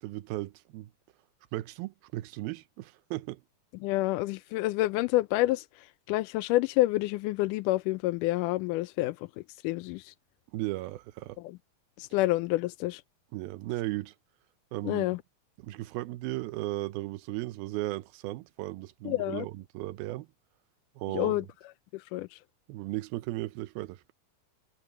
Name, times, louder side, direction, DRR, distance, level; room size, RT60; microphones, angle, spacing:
voice 1, 0.0-0.9 1.5-3.4 10.5-11.4 13.3-14.1 14.7-15.1 15.6-20.3 21.0-21.4 22.7-24.1, right 18 dB, 85° right, 2.6 m, -36 dB
voice 2, 3.8-9.3 9.6-10.1 11.4-11.6 12.0-13.0 14.8-15.2 19.1-19.5 21.1-21.5 21.9-22.4, left 17 dB, 80° left, 1.9 m, -28 dB
omnidirectional pair, 4.2 m